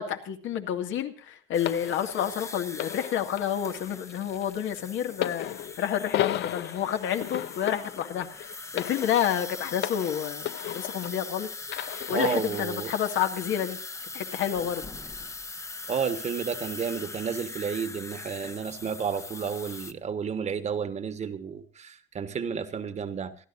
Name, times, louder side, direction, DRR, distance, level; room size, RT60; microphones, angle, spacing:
voice 1, 0.0-5.5 5.8-13.8 14.1-14.8, left 9 dB, 85° left, 2.1 m, -29 dB
sound 1, 1.5-19.9, left 3 dB, 15° left, 0.8 m, -41 dB
sound 2, 1.7-11.3 11.7-12.7 13.5-13.7, left 13 dB, 70° left, 0.6 m, -35 dB
voice 2, 12.1-12.9 15.9-23.4, right 6 dB, 35° right, 1.3 m, -31 dB
27.5 x 12.0 x 2.6 m
cardioid pair, 160°, 19 cm